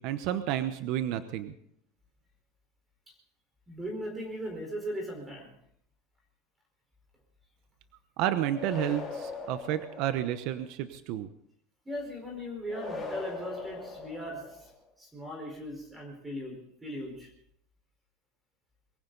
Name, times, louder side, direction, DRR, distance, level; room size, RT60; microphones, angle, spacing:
voice 1, 0.0-1.5 8.2-11.3, right 11 dB, 50° right, 11 dB, 0.9 m, -31 dB
voice 2, 3.7-5.5 11.8-14.7 15.0-17.3, equal, 10° right, 2 dB, 4.4 m, -38 dB
sound 1, 8.5-10.6 12.7-14.8, left 3 dB, 10° left, 4.3 m, -40 dB
22.5 x 15.5 x 4.0 m, 0.68 s
supercardioid pair, 165°, 0 cm